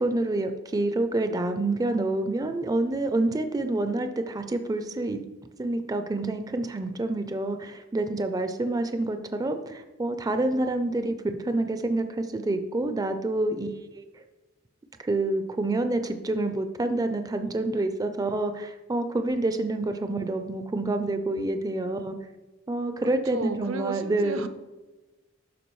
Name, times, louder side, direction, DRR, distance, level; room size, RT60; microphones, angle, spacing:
voice 1, 0.0-5.2 5.6-14.2 15.0-22.2 22.7-24.5, right 2 dB, 20° right, 7 dB, 0.4 m, -28 dB
voice 2, 23.3-24.5, right 3 dB, 70° right, 10 dB, 0.6 m, -33 dB
12.0 x 4.6 x 3.1 m, 1.2 s
head